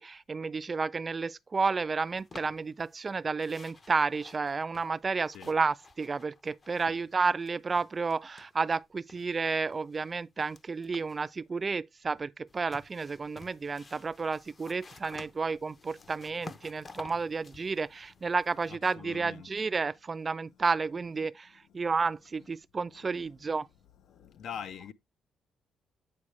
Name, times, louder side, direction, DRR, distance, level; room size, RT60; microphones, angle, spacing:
voice 1, 0.0-21.5 21.7-23.7, right 4 dB, 30° right, 0.3 m, -31 dB
sound 1, 2.2-3.1 3.4-7.1 7.4-8.8 9.1-11.3 12.5-18.8, left 3 dB, 35° left, 0.8 m, -52 dB
voice 2, 18.7-19.5 21.7-21.8 24.1-24.9, left 8 dB, 70° left, 0.6 m, -43 dB
8.5 x 4.7 x 3.1 m
cardioid pair, 90°, 0 cm